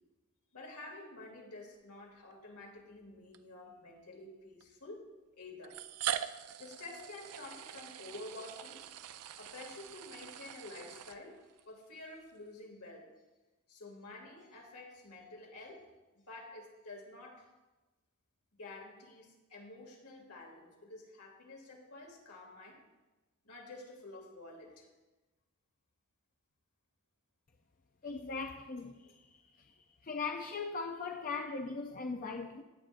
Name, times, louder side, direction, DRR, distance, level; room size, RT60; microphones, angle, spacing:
voice 1, 0.5-5.0 5.4-5.8 6.6-8.8 9.4-13.1 13.7-15.9 16.3-17.5 18.6-22.8 23.4-24.9 29.0-29.1, left 2 dB, 80° left, 2.6 m, -50 dB
sound 1, 2.2-2.3 3.3-3.4 4.6-4.7 5.6-11.6, right 10 dB, 85° right, 0.5 m, -42 dB
voice 2, 28.0-29.0 30.0-32.6, left 4 dB, 40° left, 0.5 m, -39 dB
16.0 x 9.2 x 2.6 m
head